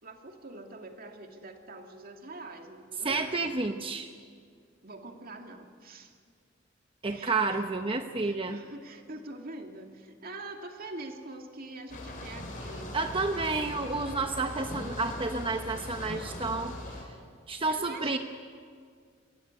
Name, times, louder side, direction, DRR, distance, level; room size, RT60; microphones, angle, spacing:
voice 1, 0.0-3.5 4.8-6.1 7.1-7.6 8.2-13.0 13.3-13.8 17.7-18.2, right 2 dB, 50° right, 4 dB, 2.3 m, -44 dB
voice 2, 3.0-4.1 7.0-8.6 12.9-16.8 17.5-18.2, right 3 dB, 25° right, 6 dB, 0.8 m, -30 dB
sound 1, 11.9-17.0, left 1 dB, 45° left, 5.0 m, -40 dB
24.0 x 17.5 x 9.4 m, 2.1 s
head